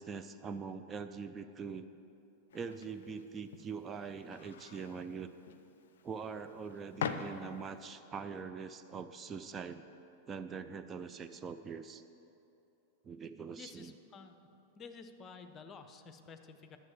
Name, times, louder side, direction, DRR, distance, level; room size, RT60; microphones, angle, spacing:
voice 1, 0.0-1.9 2.5-5.3 6.0-9.9 10.3-12.0 13.0-13.9, right 5 dB, 20° right, 9 dB, 0.4 m, -43 dB
sound 1, 2.5-7.9, left 6 dB, 60° left, 0.5 m, -44 dB
voice 2, 13.5-14.4 14.7-16.8, left 5 dB, 25° left, 8 dB, 0.7 m, -51 dB
11.0 x 6.9 x 7.0 m, 2.9 s
figure-of-eight pair, 90°, 0 cm